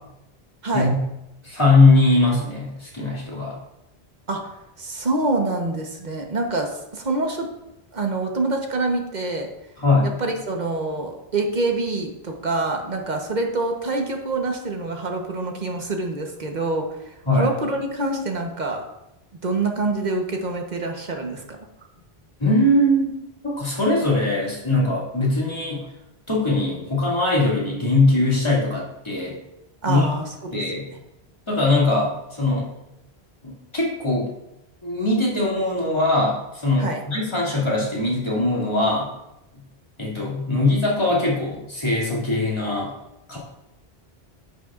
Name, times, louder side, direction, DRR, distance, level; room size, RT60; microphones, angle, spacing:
voice 1, 1.4-3.5 9.8-10.2 17.3-17.6 22.4-23.2 23.4-25.8 26.3-29.4 29.9-30.1 30.5-30.9 31.5-32.7 33.4-34.3 34.8-39.1 40.0-42.9 43.3-43.4, left 2 dB, 25° left, -6 dB, 2.5 m, -21 dB
voice 2, 4.8-7.5 7.9-9.5 10.0-16.9 17.3-18.8 19.4-21.4 29.8-30.5 36.8-37.0, right 2 dB, 45° right, 2 dB, 1.2 m, -26 dB
10.5 x 6.8 x 2.5 m, 0.90 s
omnidirectional pair, 1.1 m